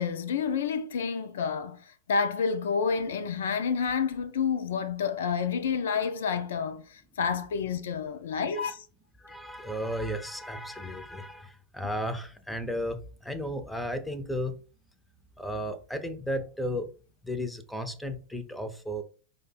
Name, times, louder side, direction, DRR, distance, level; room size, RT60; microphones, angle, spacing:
voice 1, 0.0-8.9, left 6 dB, 60° left, 0.4 m, -29 dB
voice 2, 8.3-8.7 9.2-14.5 15.4-16.9 17.2-19.0, equal, 5° left, 0.5 m, -34 dB
5.0 x 2.1 x 4.0 m
figure-of-eight pair, 90°, 0 cm